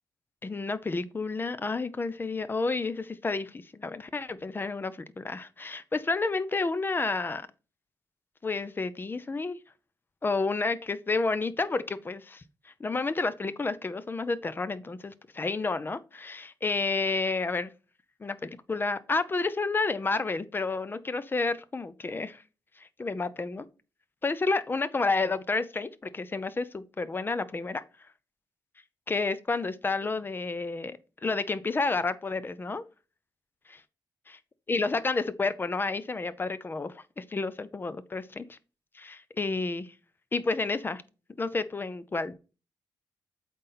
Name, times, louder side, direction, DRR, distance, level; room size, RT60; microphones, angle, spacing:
voice 1, 0.4-7.5 8.4-9.6 10.2-17.7 18.2-22.4 22.8-23.7 24.2-27.8 29.1-32.8 34.7-38.6 38.9-39.9 40.3-41.0 41.4-42.3, left 3 dB, 25° left, 0.5 m, -30 dB
8.0 x 3.9 x 4.1 m
cardioid pair, 105°, 8 cm